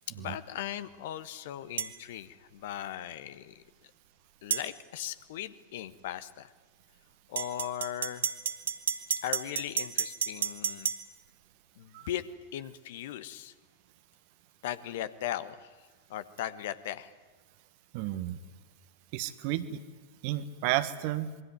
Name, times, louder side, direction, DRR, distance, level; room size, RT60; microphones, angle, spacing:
voice 1, 0.1-3.9 4.4-6.5 7.3-8.3 9.2-10.9 11.8-12.3 12.5-13.5 14.6-17.1, left 11 dB, 55° left, 14 dB, 1.3 m, -38 dB
sound 1, 1.8-1.9 4.5-4.7 7.4-11.0, right 8 dB, 65° right, 1.6 m, -31 dB
voice 2, 17.9-18.4 19.1-19.8 20.2-21.3, right 14 dB, 45° right, 12 dB, 1.4 m, -32 dB
27.0 x 22.0 x 9.5 m, 1.3 s
figure-of-eight pair, 90°, 0 cm